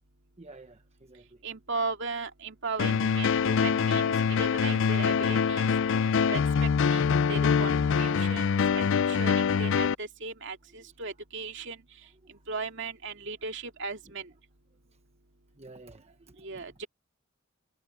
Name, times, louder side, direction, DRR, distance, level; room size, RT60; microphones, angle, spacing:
voice 1, 0.4-1.4 3.4-3.7 4.2-4.3 12.3-12.4 15.6-16.6, right 2 dB, 30° right, 1.2 m, -52 dB
voice 2, 1.4-5.7 6.3-11.8 12.5-14.3 16.4-16.9, right 4 dB, 60° right, 2.3 m, -37 dB
sound 1, 2.8-9.9, left 6 dB, 60° left, 0.4 m, -24 dB
head